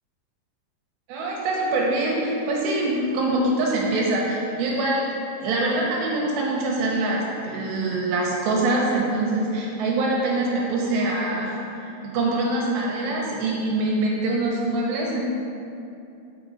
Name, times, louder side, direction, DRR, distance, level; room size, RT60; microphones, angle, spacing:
voice 1, 1.1-15.2, right 2 dB, 75° right, -3 dB, 2.8 m, -24 dB
6.8 x 6.1 x 4.1 m, 2.7 s
omnidirectional pair, 5.4 m